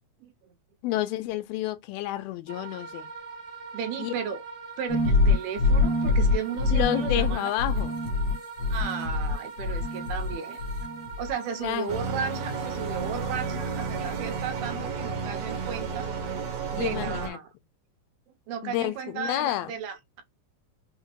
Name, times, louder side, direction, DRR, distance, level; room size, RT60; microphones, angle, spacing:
voice 1, 0.2-0.5 3.7-4.4 4.8-7.5 8.7-10.6 11.2-16.1 16.7-17.5 18.5-20.2, right 7 dB, 85° right, 2.9 m, -35 dB
voice 2, 0.8-3.1 4.0-4.1 6.7-7.9 11.6-11.9 16.8-17.4 18.6-19.7, left 14 dB, 90° left, 2.5 m, -30 dB
sound 1, 2.5-14.5, right 5 dB, 35° right, 1.2 m, -42 dB
sound 2, 4.9-10.3 10.6-11.3, left 3 dB, 75° left, 1.6 m, -25 dB
sound 3, 11.9-17.3, right 5 dB, 65° right, 1.8 m, -32 dB
6.4 x 2.1 x 2.9 m
omnidirectional pair, 4.2 m